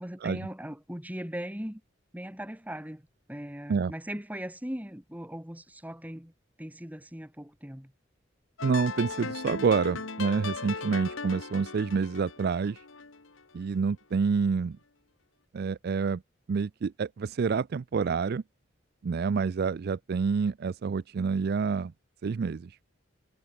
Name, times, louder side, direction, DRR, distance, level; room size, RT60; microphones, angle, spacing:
voice 1, 0.0-1.8 2.1-6.3 6.6-7.9, equal, 10° right, 2.3 m, -39 dB
sound 1, 8.6-13.7, left 4 dB, 85° left, 1.8 m, -38 dB
voice 2, 8.6-12.8 13.5-14.8 15.5-16.2 16.5-18.4 19.0-21.9 22.2-22.8, right 5 dB, 55° right, 0.4 m, -28 dB
head